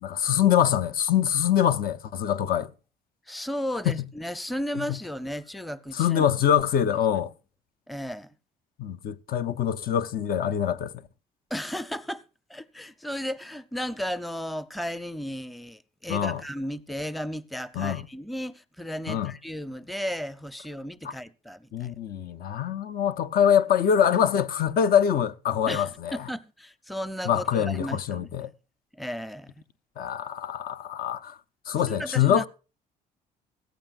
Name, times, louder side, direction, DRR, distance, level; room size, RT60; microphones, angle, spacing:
voice 1, 0.0-2.7 3.8-4.0 5.9-7.3 8.8-10.9 16.1-16.4 17.7-18.0 19.1-19.3 21.0-21.1 21.7-26.2 27.2-28.5 30.0-31.4 31.7-32.5, left 9 dB, 60° left, 0.8 m, -24 dB
voice 2, 3.3-6.3 7.9-8.3 11.5-12.2 12.5-21.9 25.7-28.3 28.9-29.5 31.9-32.5, equal, ahead, 0.6 m, -34 dB
16.5 x 15.0 x 2.5 m
cardioid pair, 110°, 17 cm